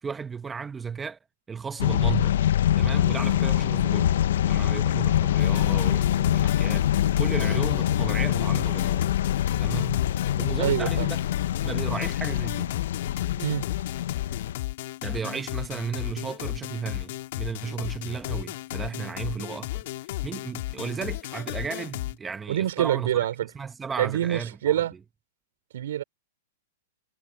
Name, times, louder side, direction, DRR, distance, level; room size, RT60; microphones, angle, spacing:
voice 1, 0.0-1.2 1.5-2.4 2.7-9.1 9.6-10.1 10.4-11.2 11.6-12.8 15.0-23.3 23.5-24.7, right 6 dB, 10° right, 1.0 m, -34 dB
sound 1, 1.8-14.6, left 11 dB, 70° left, 0.7 m, -24 dB
sound 2, 5.4-22.2, left 17 dB, 55° left, 2.6 m, -35 dB
voice 2, 10.6-11.1 13.4-13.7 22.5-23.5 24.0-24.9 25.7-26.0, right 12 dB, 70° right, 4.9 m, -26 dB
hypercardioid pair, 155°, 0 cm